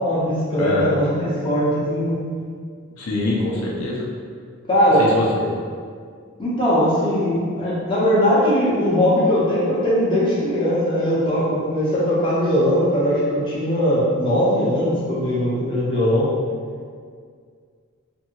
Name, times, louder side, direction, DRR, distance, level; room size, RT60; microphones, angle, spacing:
voice 1, 0.0-2.2 4.7-5.0 6.4-16.3, equal, 20° left, -9 dB, 0.6 m, -20 dB
voice 2, 0.6-0.9 2.9-4.1 5.0-5.5, left 2 dB, 80° left, -3 dB, 0.5 m, -24 dB
2.7 x 2.6 x 2.8 m, 2.1 s
head